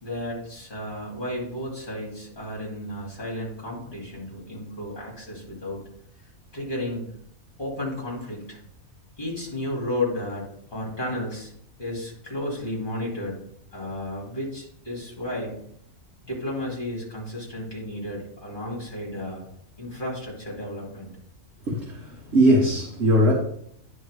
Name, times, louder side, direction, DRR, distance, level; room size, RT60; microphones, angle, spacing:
voice 1, 0.0-5.8 6.5-7.1 7.6-8.6 9.2-11.5 11.8-13.4 13.7-15.7 16.2-19.4 19.8-21.1, left 1 dB, 35° left, -3 dB, 2.8 m, -33 dB
voice 2, 21.7-22.1 22.3-23.3, equal, 50° right, -3 dB, 1.5 m, -19 dB
9.9 x 3.6 x 4.9 m, 0.68 s
omnidirectional pair, 1.5 m